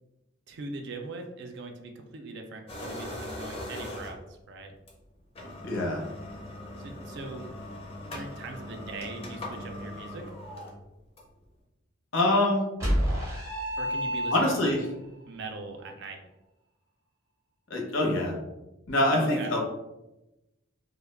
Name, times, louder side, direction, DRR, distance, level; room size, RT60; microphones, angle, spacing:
voice 1, 0.5-4.7 6.8-7.5 8.1-10.2 13.8-14.8 15.3-16.2 19.1-19.5, right 3 dB, 55° right, 4 dB, 0.3 m, -40 dB
sound 1, 2.7-4.4 4.9-5.0 5.3-11.4, left 1 dB, 30° left, 0.5 m, -40 dB
voice 2, 5.6-6.0 12.1-12.7 14.3-14.9 17.7-18.4 18.9-19.6, left 1 dB, 65° left, -1 dB, 0.7 m, -25 dB
sound 2, 12.8-14.9, equal, 15° right, 0.6 m, -28 dB
2.2 x 2.0 x 3.2 m, 0.95 s
head